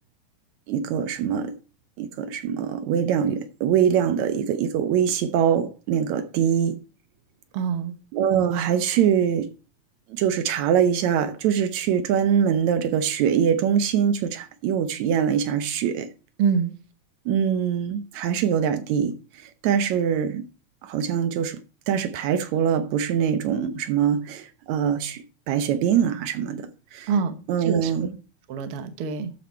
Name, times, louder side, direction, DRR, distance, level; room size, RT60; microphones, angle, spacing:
voice 1, 0.7-1.6 2.0-6.8 8.1-9.5 10.1-16.1 17.3-20.4 20.8-21.6 21.9-26.6 26.9-27.1 27.5-28.1, right 8 dB, 75° right, 2.0 m, -23 dB
voice 2, 7.5-8.0 16.4-16.7 27.1-28.0 28.5-29.3, right 6 dB, 60° right, 1.7 m, -25 dB
13.0 x 5.5 x 4.5 m
omnidirectional pair, 3.4 m